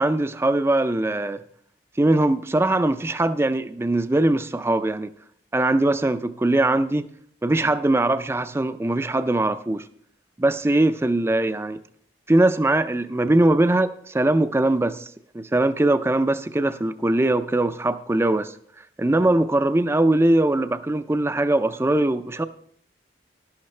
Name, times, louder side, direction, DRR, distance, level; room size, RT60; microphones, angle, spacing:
voice 1, 0.0-1.4 2.0-5.1 5.5-7.1 7.4-9.8 10.4-11.8 12.3-15.1 15.3-18.5 19.0-22.4, right 2 dB, 15° right, 0.4 m, -21 dB
11.5 x 11.5 x 3.2 m
head